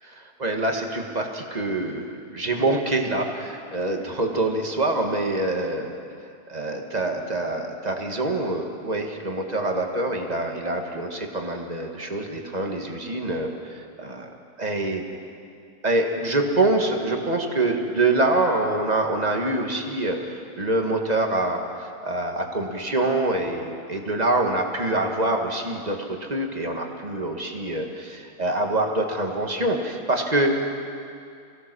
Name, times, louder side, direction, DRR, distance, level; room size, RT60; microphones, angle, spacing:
voice 1, 0.0-6.0 6.5-14.3 14.6-15.0 15.8-21.6 22.0-30.6, right 2 dB, 25° right, 2 dB, 1.8 m, -25 dB
26.0 x 17.0 x 6.3 m, 2.4 s
omnidirectional pair, 1.8 m